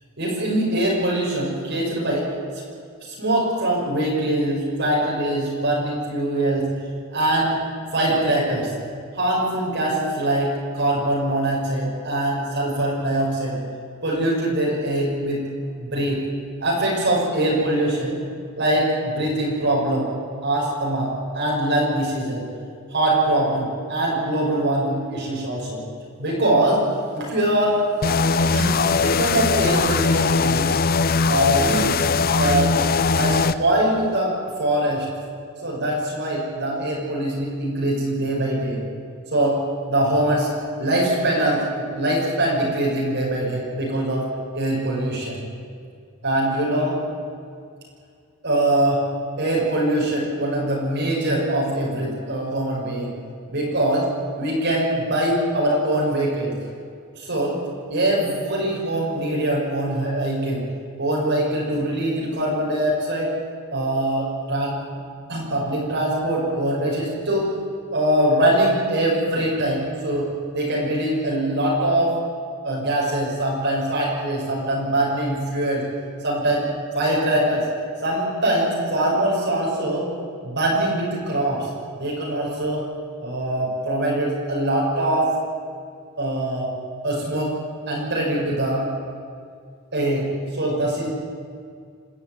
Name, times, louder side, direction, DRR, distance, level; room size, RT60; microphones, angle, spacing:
voice 1, 0.2-2.3 3.0-6.7 7.1-7.5 7.9-8.7 9.1-13.6 14.0-15.4 15.8-16.2 16.6-18.2 18.6-20.1 20.4-22.4 22.9-25.8 26.2-26.8 27.1-27.8 28.5-30.7 31.3-32.7 33.1-35.1 35.6-38.8 39.3-39.6 39.9-40.5 40.8-44.3 44.5-45.4 46.2-47.0 48.4-49.0 49.4-53.1 53.5-54.1 54.4-56.5 57.1-57.6 57.9-60.6 61.0-63.3 63.7-64.8 65.3-67.5 67.9-70.3 70.5-72.1 72.6-75.8 76.2-76.7 76.9-77.7 78.0-80.1 80.4-81.7 82.0-82.8 83.2-85.3 86.2-86.7 87.0-87.5 87.9-88.8 89.9-91.1, right 1 dB, 55° right, -4 dB, 6.3 m, -23 dB
sound 1, 28.0-33.5, left 4 dB, 45° left, 0.7 m, -20 dB
28.0 x 13.0 x 9.6 m, 2.2 s
head